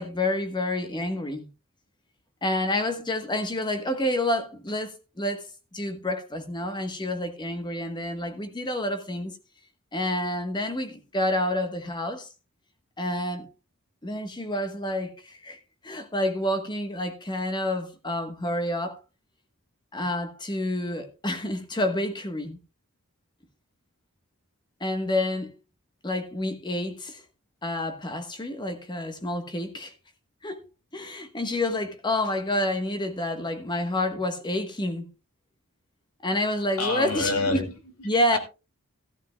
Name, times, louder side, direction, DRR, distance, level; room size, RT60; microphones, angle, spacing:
voice 1, 0.0-1.5 2.4-9.3 9.9-12.3 13.0-13.5 14.0-19.0 19.9-22.6 24.8-25.6 26.0-27.2 27.6-29.9 30.4-30.6 30.9-35.1 36.2-37.6 38.0-38.4, left 1 dB, 20° left, 1.2 m, -29 dB
voice 2, 36.8-38.4, left 3 dB, 75° left, 2.7 m, -28 dB
14.0 x 12.5 x 2.3 m
head